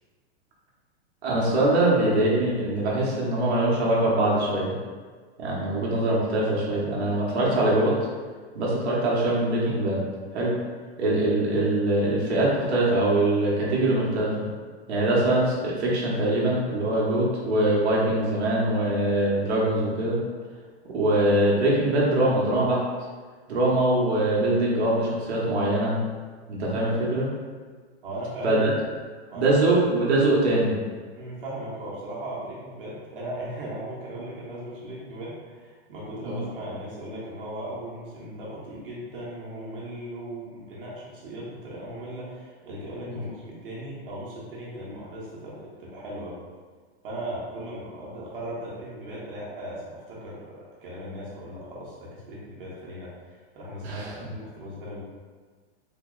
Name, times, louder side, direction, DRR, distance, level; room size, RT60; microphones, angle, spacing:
voice 1, 1.2-4.7 5.4-8.0 8.5-10.0 10.3-10.5 11.0-14.5 14.9-20.2 20.9-22.8 23.5-26.0 26.5-27.3 28.4-28.7 29.3-30.7 36.2-36.4 43.1-43.2 53.8-54.1, right 1 dB, 75° right, -5 dB, 1.2 m, -23 dB
voice 2, 28.0-28.6 29.3-29.8 31.1-46.4 47.0-55.0, right 1 dB, 55° right, -6 dB, 1.3 m, -37 dB
3.9 x 2.1 x 3.7 m, 1.5 s
supercardioid pair, 180°, 32 cm